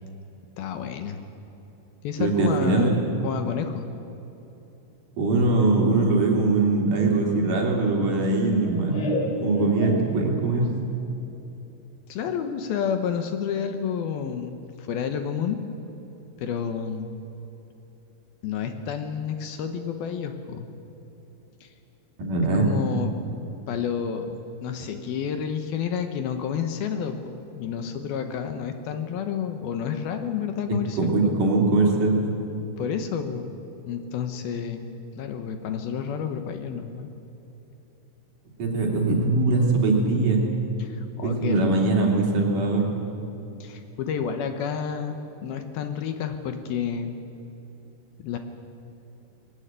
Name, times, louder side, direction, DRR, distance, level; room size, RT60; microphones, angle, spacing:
voice 1, 0.6-1.2 2.0-3.0 3.2-3.9 12.1-15.6 16.4-17.1 18.4-20.7 21.6-21.7 22.6-23.1 23.7-31.4 32.8-33.6 33.9-34.9 35.2-37.1 40.8-42.1 43.6-47.2 48.2-48.4, left 7 dB, 70° left, 7 dB, 2.8 m, -30 dB
voice 2, 2.2-3.0 5.2-10.7 22.2-22.7 31.0-32.3 38.6-40.5 41.2-42.9, right 3 dB, 55° right, -1 dB, 4.2 m, -22 dB
Laughter, 7.0-10.6, left 1 dB, 45° left, 3.4 m, -32 dB
20.5 x 18.5 x 9.0 m, 3.0 s
omnidirectional pair, 4.8 m